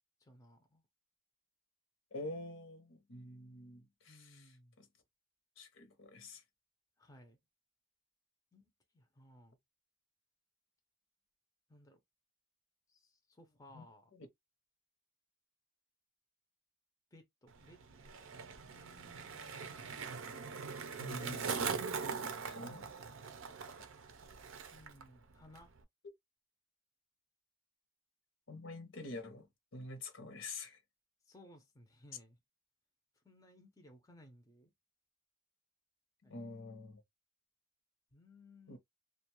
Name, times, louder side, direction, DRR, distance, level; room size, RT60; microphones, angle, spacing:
voice 1, 0.2-0.8 4.1-4.8 7.0-7.4 8.5-9.6 11.7-12.0 12.9-14.1 17.1-17.8 18.2-18.3 18.7-19.7 24.7-25.7 31.3-32.4 33.2-34.7 36.2-36.6 38.1-38.8, left 1 dB, 15° left, 0.5 m, -60 dB
voice 2, 2.1-4.9 5.6-6.4 13.7-13.8 14.1-14.3 21.0-22.1 22.5-23.1 28.5-29.5 29.7-30.8 36.3-37.0 38.7-38.8, left 2 dB, 65° left, 0.7 m, -47 dB
Skateboard, 17.5-25.0 25.3-25.8, right 5 dB, 70° right, 0.5 m, -42 dB
2.5 x 2.2 x 2.9 m
head